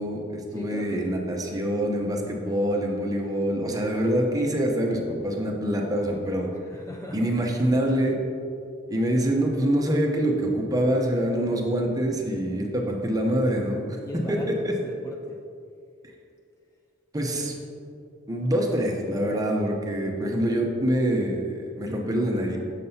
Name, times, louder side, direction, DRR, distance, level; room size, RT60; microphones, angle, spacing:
voice 1, 0.0-6.5 7.1-8.2 8.9-14.0 14.3-14.7 17.1-17.5 18.3-22.6, right 1 dB, 20° right, 0 dB, 0.7 m, -25 dB
voice 2, 0.5-1.0 6.5-7.3 14.0-15.4 17.3-17.5, left 1 dB, 15° left, 0 dB, 0.3 m, -39 dB
7.4 x 6.5 x 2.8 m, 2.4 s
head